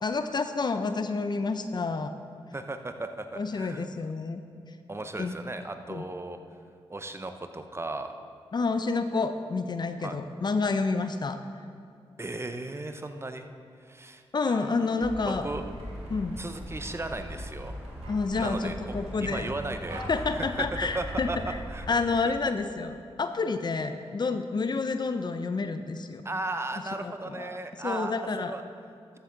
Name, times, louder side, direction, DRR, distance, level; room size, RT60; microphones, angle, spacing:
voice 1, 0.0-2.1 3.3-4.4 5.2-5.3 5.9-6.0 8.5-11.4 14.3-15.5 16.1-16.4 18.1-19.5 20.1-21.3 21.9-26.2 27.0-27.6 27.8-28.5, left 4 dB, 45° left, 9 dB, 0.6 m, -29 dB
voice 2, 2.5-3.9 4.9-6.4 6.9-8.2 10.0-10.2 12.2-13.5 13.8-14.2 15.3-15.6 16.4-17.8 18.3-20.0 20.3-21.4 21.7-21.9 22.2-22.3 26.2-28.6, right 2 dB, 25° right, 7 dB, 0.7 m, -36 dB
sound 1, 14.4-21.9, right 1 dB, 90° right, 1.6 m, -49 dB
sound 2, 15.0-22.0, equal, 10° right, 1.3 m, -40 dB
13.5 x 7.1 x 3.9 m, 2.3 s
cardioid pair, 55°, 10 cm